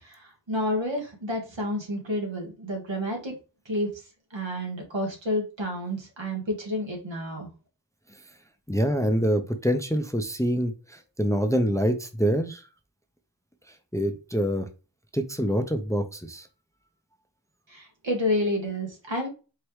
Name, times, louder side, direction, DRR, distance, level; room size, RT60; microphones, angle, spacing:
voice 1, 0.0-3.4 3.6-3.9 4.3-7.5 17.7-19.3, left 1 dB, 80° right, 0 dB, 1.7 m, -30 dB
voice 2, 8.7-12.6 13.9-14.7 15.1-16.5, equal, 5° left, 7 dB, 0.5 m, -25 dB
4.6 x 3.0 x 3.1 m, 0.33 s
wide cardioid pair, 40°, 44 cm